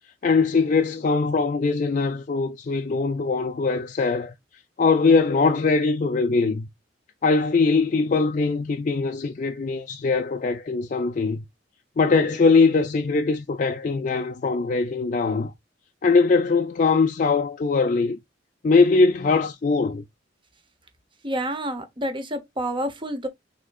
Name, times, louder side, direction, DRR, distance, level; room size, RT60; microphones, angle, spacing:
voice 1, 0.2-4.3 4.8-6.7 7.2-11.5 12.0-15.5 16.0-18.2 18.6-20.0, left 4 dB, 40° left, 0.4 m, -21 dB
voice 2, 21.2-23.3, right 1 dB, 25° right, 0.9 m, -28 dB
6.2 x 3.4 x 2.3 m
head